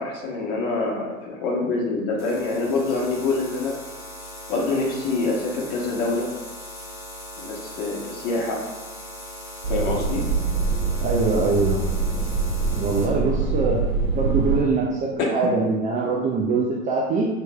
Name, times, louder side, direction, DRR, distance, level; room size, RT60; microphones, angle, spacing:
voice 1, 0.0-3.7 4.5-6.3 7.4-8.6 9.7-10.2, left 3 dB, 45° left, -2 dB, 1.3 m, -25 dB
sound 1, 2.2-13.1, left 1 dB, 85° left, 1.2 m, -39 dB
sound 2, 9.6-14.6, right 4 dB, 65° right, 1.1 m, -24 dB
voice 2, 11.0-11.9 12.8-13.8 14.1-17.3, right 3 dB, 20° right, -3 dB, 0.4 m, -23 dB
5.8 x 3.3 x 2.3 m, 1.1 s
figure-of-eight pair, 85°, 42 cm